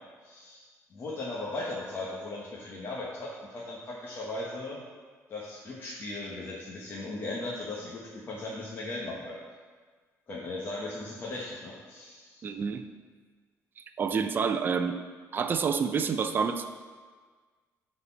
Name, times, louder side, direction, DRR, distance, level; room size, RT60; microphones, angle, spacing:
voice 1, 0.2-0.6 0.9-4.8 5.3-9.4 10.3-12.4, left 2 dB, 35° left, -5 dB, 1.2 m, -37 dB
voice 2, 12.4-12.8 14.0-15.0 15.3-16.6, right 6 dB, 35° right, 8 dB, 0.5 m, -28 dB
9.5 x 4.2 x 5.7 m, 1.5 s
cardioid pair, 135°, 6 cm